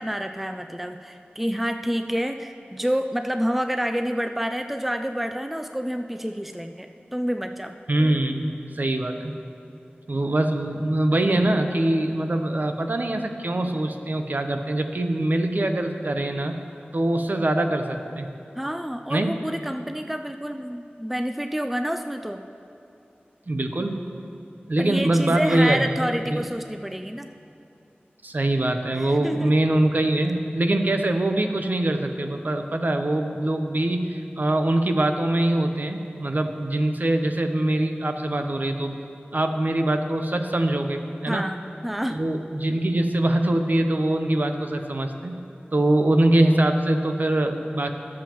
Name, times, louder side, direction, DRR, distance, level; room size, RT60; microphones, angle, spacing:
voice 1, 0.0-7.8 18.6-22.4 24.8-27.3 28.9-29.5 41.3-42.2, equal, 5° right, 6 dB, 0.4 m, -28 dB
voice 2, 7.9-9.3 10.1-16.5 16.9-18.3 19.1-19.3 23.5-24.0 24.7-25.9 26.3-26.5 28.2-39.0 39.3-41.5 42.1-45.4 45.7-47.9, right 1 dB, 55° right, 5 dB, 0.8 m, -23 dB
20.0 x 7.3 x 3.0 m, 2.6 s
wide cardioid pair, 65°, 4 cm